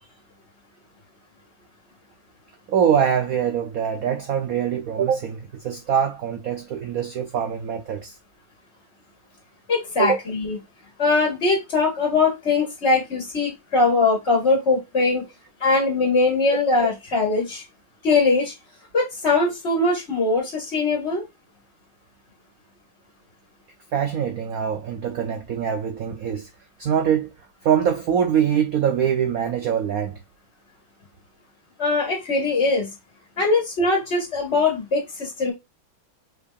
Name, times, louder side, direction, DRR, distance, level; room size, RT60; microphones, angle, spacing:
voice 1, 2.7-8.1 10.0-10.2 23.9-26.5 26.8-27.3 27.6-30.2, right 8 dB, 80° right, 0.7 m, -23 dB
voice 2, 9.7-10.6 11.0-15.2 15.6-17.6 18.0-18.5 18.9-21.2 31.8-32.9 33.4-35.5, left 3 dB, 35° left, 2.0 m, -21 dB
5.2 x 3.6 x 2.4 m
omnidirectional pair, 2.3 m